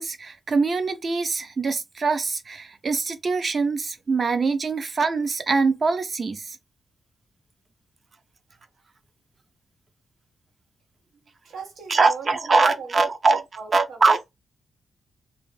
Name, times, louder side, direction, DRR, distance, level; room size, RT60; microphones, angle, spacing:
voice 1, 0.0-6.6 11.9-13.4 13.7-14.3, right 4 dB, 40° right, 0.4 m, -23 dB
voice 2, 11.4-12.9 13.3-14.0, right 5 dB, 85° right, 1.0 m, -39 dB
2.4 x 2.4 x 3.2 m
wide cardioid pair, 150°, 0 cm